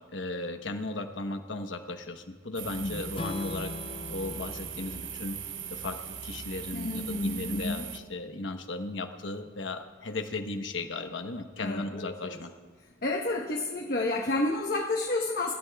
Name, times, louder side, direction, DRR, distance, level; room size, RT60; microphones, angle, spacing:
voice 1, 0.1-3.7 4.1-5.4 5.7-12.5, left 2 dB, 85° left, 6 dB, 1.0 m, -36 dB
sound 1, 2.6-8.0, right 7 dB, 80° right, 0.8 m, -40 dB
Strum, 3.1-7.3, left 3 dB, 30° left, 0.4 m, -42 dB
voice 2, 6.7-7.8 11.6-12.4 13.0-15.5, left 2 dB, 55° left, 0 dB, 1.0 m, -30 dB
26.0 x 13.5 x 2.3 m, 1.4 s
head